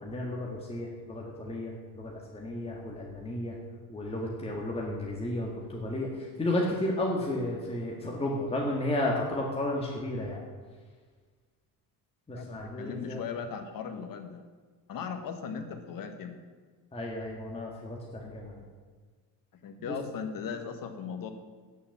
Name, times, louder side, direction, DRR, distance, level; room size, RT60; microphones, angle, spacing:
voice 1, 0.0-3.6 3.9-10.4 12.3-13.2 16.9-18.6 19.9-20.0, left 1 dB, 15° left, -2 dB, 1.7 m, -33 dB
voice 2, 12.3-14.4 14.9-16.4 19.6-21.3, left 6 dB, 55° left, 6 dB, 1.5 m, -38 dB
9.5 x 6.7 x 7.3 m, 1.5 s
cardioid pair, 115°, 41 cm